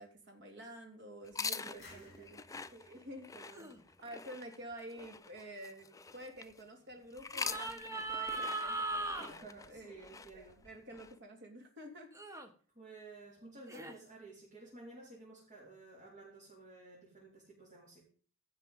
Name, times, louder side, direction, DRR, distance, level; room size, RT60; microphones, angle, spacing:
voice 1, 0.0-2.4 2.7-3.3 4.0-5.9 6.1-9.9 10.3-12.1, right 1 dB, 55° right, 3 dB, 3.1 m, -50 dB
sound 1, 1.2-6.6 7.1-11.1, left 5 dB, 15° left, 0.5 m, -45 dB
voice 2, 1.4-2.3 3.3-3.7 9.2-10.6 12.7-18.0, right 3 dB, 35° right, -6 dB, 4.5 m, -54 dB
sound 2, 1.8-4.5, left 3 dB, 50° left, 6.7 m, -61 dB
sound 3, 3.5-3.8 7.3-9.3 12.1-12.5 13.7-13.9, right 2 dB, 15° right, 1.3 m, -38 dB
16.5 x 6.7 x 5.5 m, 0.42 s
head